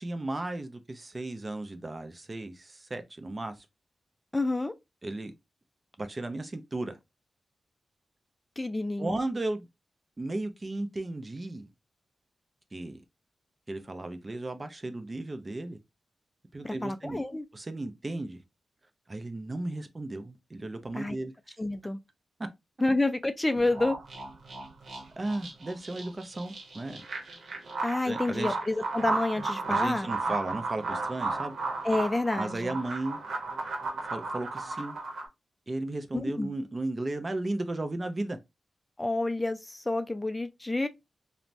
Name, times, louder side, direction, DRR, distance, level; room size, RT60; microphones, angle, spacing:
voice 1, 0.0-3.6 5.0-5.3 6.0-7.0 9.0-9.7 10.2-11.7 12.7-13.0 13.7-15.8 16.5-17.2 17.5-18.4 19.1-21.3 25.2-27.0 28.0-28.6 29.7-31.5 32.4-33.2 34.1-35.0 35.7-38.4, right 2 dB, 35° right, 0.5 m, -35 dB
voice 2, 4.3-4.7 8.6-9.2 16.6-17.4 21.0-21.2 21.6-22.0 22.8-24.0 27.8-30.1 31.8-32.8 36.1-36.5 39.0-40.9, left 2 dB, 20° left, 0.3 m, -29 dB
sound 1, 23.5-35.3, right 3 dB, 80° right, 0.8 m, -34 dB
3.1 x 2.0 x 2.6 m
cardioid pair, 55°, 0 cm